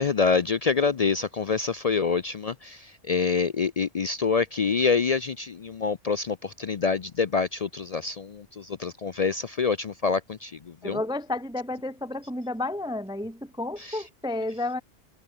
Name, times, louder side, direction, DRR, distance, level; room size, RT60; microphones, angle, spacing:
voice 1, 0.0-11.0 13.8-14.0, left 5 dB, 45° left, 0.5 m, -26 dB
voice 2, 10.8-14.8, left 2 dB, 5° right, 0.3 m, -31 dB
omnidirectional pair, 1.2 m